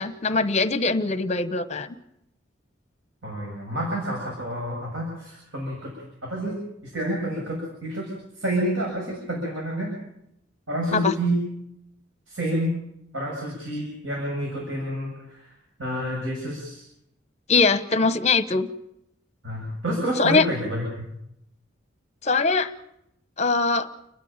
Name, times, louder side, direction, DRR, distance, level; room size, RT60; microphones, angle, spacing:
voice 1, 0.0-1.9 10.9-11.1 17.5-18.7 20.2-20.4 22.2-22.7 23.4-23.9, left 4 dB, 35° left, 12 dB, 1.1 m, -22 dB
voice 2, 3.2-5.9 6.2-6.6 6.9-9.9 10.7-11.4 12.3-12.8 13.1-15.5 15.8-16.8 19.4-21.1, right 1 dB, 85° right, -2 dB, 7.5 m, -29 dB
29.5 x 11.5 x 9.0 m, 0.80 s
head